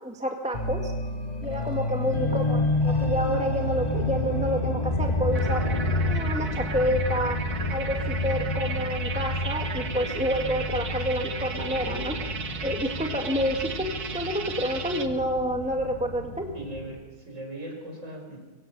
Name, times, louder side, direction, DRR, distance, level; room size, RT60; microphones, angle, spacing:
voice 1, 0.0-0.9 1.4-5.6 6.0-7.4 7.7-12.2 12.6-13.9 14.1-16.5, equal, 5° right, 3 dB, 1.8 m, -29 dB
sound 1, 0.5-16.9, left 2 dB, 25° left, 2.5 m, -29 dB
voice 2, 2.0-2.3 16.5-18.4, right 1 dB, 50° right, 1 dB, 5.5 m, -39 dB
sound 2, 5.3-15.1, right 5 dB, 70° right, 2.1 m, -36 dB
24.0 x 23.5 x 6.9 m, 1.3 s
omnidirectional pair, 1.7 m